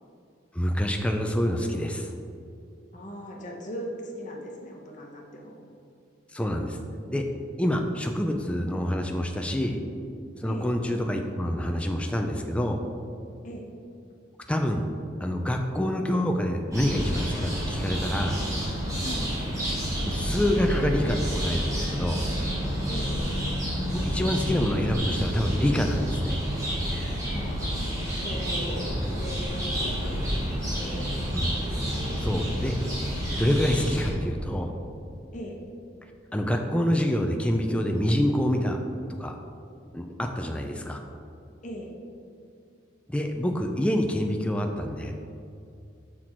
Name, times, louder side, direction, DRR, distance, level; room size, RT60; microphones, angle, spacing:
voice 1, 0.5-2.1 6.3-6.8 7.1-7.3 7.6-9.8 10.4-12.8 14.5-14.9 15.2-18.4 20.0-22.2 23.9-26.4 31.3-31.5 32.2-32.8 33.4-34.7 36.3-38.8 39.2-39.4 39.9-41.0 43.1-45.1, equal, 5° left, 3 dB, 0.4 m, -26 dB
voice 2, 2.9-5.6 10.5-10.7 13.4-13.7 19.0-19.3 22.9-23.3 27.2-27.6 28.1-31.1 35.3-35.6 41.6-41.9, equal, 40° left, 0 dB, 1.1 m, -39 dB
sound 1, 16.7-34.1, equal, 15° right, 1.6 m, -29 dB
6.2 x 6.1 x 4.4 m, 2.5 s
head